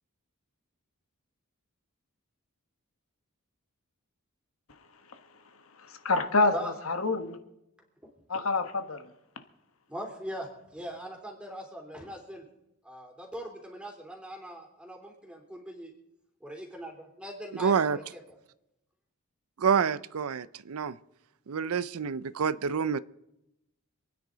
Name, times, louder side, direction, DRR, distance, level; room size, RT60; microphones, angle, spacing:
voice 1, 6.0-7.4 8.3-9.1, left 3 dB, 70° left, 1.4 m, -27 dB
voice 2, 9.9-12.4 12.8-15.9 16.4-18.4, equal, 5° right, 3.2 m, -41 dB
voice 3, 17.6-18.0 19.6-21.0 21.5-23.0, right 6 dB, 85° right, 0.5 m, -27 dB
27.0 x 9.8 x 3.9 m
head